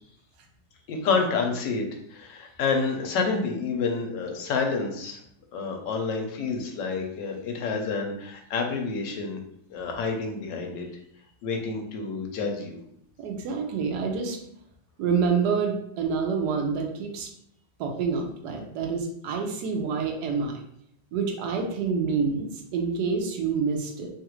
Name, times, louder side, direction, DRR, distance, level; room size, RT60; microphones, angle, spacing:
voice 1, 0.9-1.8 2.1-5.2 5.5-9.4 9.7-10.9 11.4-12.8, left 4 dB, 75° left, 2 dB, 1.2 m, -28 dB
voice 2, 13.2-14.4 15.0-17.3 17.8-20.5 21.1-24.1, right 5 dB, 70° right, 2 dB, 1.0 m, -27 dB
3.2 x 2.4 x 2.9 m, 0.72 s
omnidirectional pair, 2.1 m